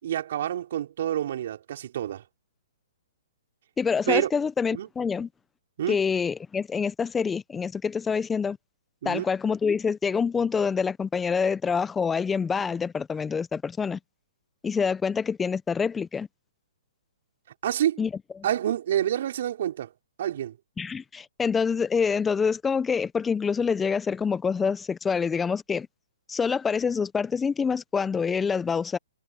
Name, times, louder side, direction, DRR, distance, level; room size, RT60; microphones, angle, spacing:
voice 1, 0.0-2.2 4.1-4.3 4.7-4.9 5.8-6.0 9.0-9.2 17.6-18.0 18.4-19.9 20.2-20.6, right 11 dB, 55° right, 5.6 m, -27 dB
voice 2, 3.8-5.3 5.9-8.6 9.0-14.0 14.6-16.3 18.0-18.1 20.8-25.9 26.3-29.0, left 6 dB, 10° left, 1.0 m, -26 dB
hypercardioid pair, 135°, 0 cm